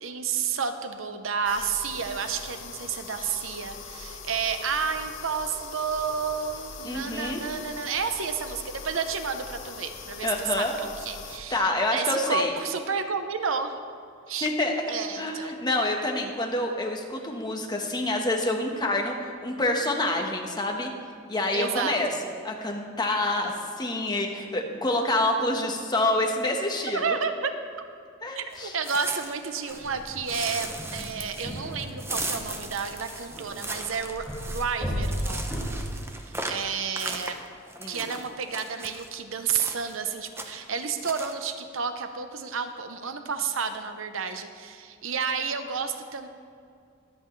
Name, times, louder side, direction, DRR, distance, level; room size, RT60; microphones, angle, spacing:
voice 1, 0.0-10.6 11.0-13.7 14.3-14.5 14.9-15.5 21.5-21.9 26.9-27.5 28.4-35.6 36.3-37.4 37.9-46.3, right 6 dB, 75° right, 8 dB, 0.8 m, -31 dB
sound 1, 1.4-11.4, left 5 dB, 65° left, 1.1 m, -42 dB
voice 2, 6.8-7.4 10.2-10.7 11.5-12.5 14.4-14.8 15.2-19.1 19.4-20.9 21.3-22.1 22.4-27.1 28.2-28.7 37.8-38.1, left 2 dB, 20° left, 2 dB, 1.2 m, -27 dB
sound 2, 28.5-29.9 30.3-39.1 39.6-40.0 40.3-40.7 41.0-41.3, right 2 dB, 10° right, 0.8 m, -37 dB
sound 3, 29.7-35.9, equal, 5° left, 2.0 m, -35 dB
22.5 x 8.1 x 3.2 m, 2.4 s
head